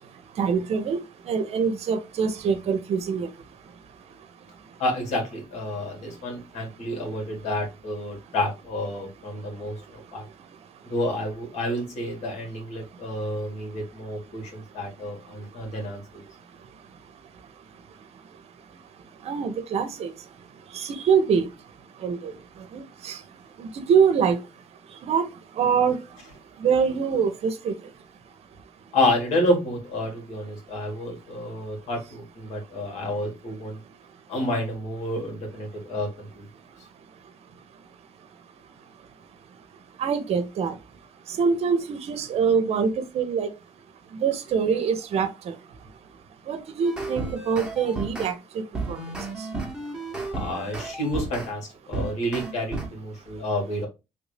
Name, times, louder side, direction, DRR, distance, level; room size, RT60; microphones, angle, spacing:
voice 1, 0.4-1.0 1.3-3.3 19.3-20.1 20.7-21.5 22.0-22.3 22.7-23.2 23.6-24.4 25.0-25.3 25.6-26.0 26.6-27.7 40.0-40.7 41.4-43.5 44.2-45.5 46.5-48.3 48.9-49.0, right 6 dB, 60° right, 0.7 m, -24 dB
voice 2, 4.8-10.3 10.8-16.2 28.9-33.8 34.3-36.5 50.3-53.9, left 1 dB, 70° left, 1.9 m, -29 dB
sound 1, 46.8-48.3 48.7-51.5 51.9-52.9, right 3 dB, 5° right, 1.1 m, -33 dB
3.3 x 2.6 x 3.2 m
cardioid pair, 90°, 12 cm